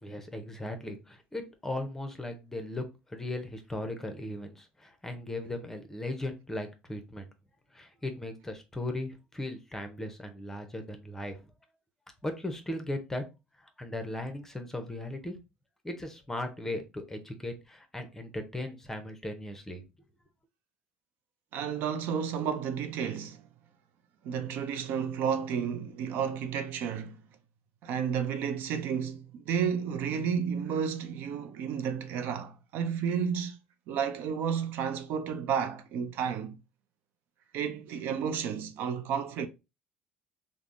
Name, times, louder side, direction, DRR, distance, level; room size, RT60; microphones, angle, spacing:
voice 1, 0.0-7.3 7.7-11.4 12.2-13.2 13.6-15.4 15.8-19.8, left 1 dB, 10° left, 0.6 m, -37 dB
voice 2, 21.5-23.4 24.2-27.2 27.8-33.6 33.9-36.5 37.5-39.5, right 7 dB, 65° right, 0.4 m, -31 dB
3.3 x 2.0 x 2.5 m
supercardioid pair, 95°, 4 cm